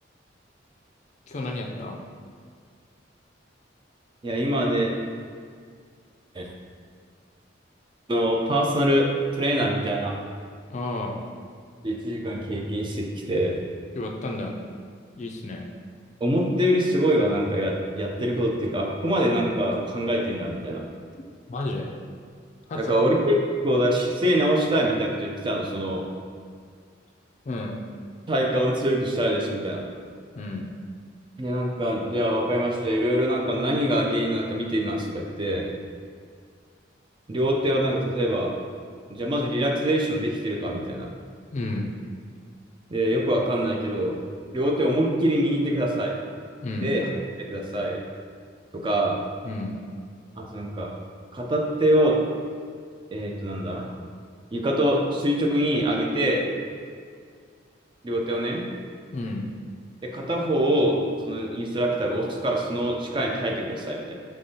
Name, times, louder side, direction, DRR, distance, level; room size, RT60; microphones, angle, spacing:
voice 1, 1.3-2.0 10.7-11.1 13.9-14.5 15.2-15.7 21.5-22.0 22.7-23.0 27.4-27.8 30.4-30.7 41.5-41.9 46.6-46.9 49.4-49.8 59.1-59.5, left 2 dB, 40° left, 1 dB, 0.4 m, -31 dB
voice 2, 4.2-4.9 6.3-6.5 8.1-10.2 11.8-13.6 16.2-20.8 22.8-23.4 23.6-26.1 28.3-29.9 31.4-35.7 37.3-38.5 39.1-41.1 42.9-44.2 44.5-46.2 46.8-47.1 47.4-48.0 48.7-49.2 50.4-51.0 51.3-52.2 53.1-53.9 54.5-56.5 58.0-58.6 60.0-64.1, equal, 25° right, 0 dB, 0.4 m, -24 dB
5.2 x 3.2 x 2.7 m, 2.1 s
head